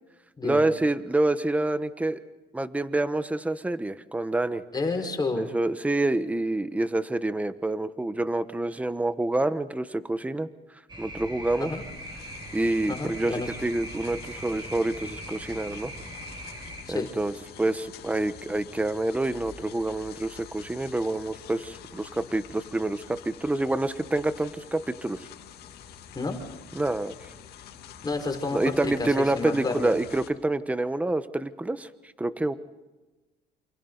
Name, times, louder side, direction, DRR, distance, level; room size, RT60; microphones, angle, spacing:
voice 1, 0.4-2.2 2.5-4.6 5.4-10.5 11.0-11.7 12.5-15.9 16.9-25.2 26.7-27.1 28.5-31.9 32.2-32.6, right 2 dB, 10° right, 12 dB, 1.1 m, -27 dB
voice 2, 4.7-5.5 11.6-11.8 12.9-13.5 16.9-17.1 26.1-26.4 28.0-29.9, left 3 dB, 25° left, 3 dB, 4.9 m, -30 dB
sound 1, 10.9-16.8, right 1 dB, 25° right, 6.6 m, -40 dB
sound 2, 11.1-30.3, left 8 dB, 70° left, 2.6 m, -47 dB
28.5 x 28.0 x 4.0 m, 1.2 s
cardioid pair, 110°, 17 cm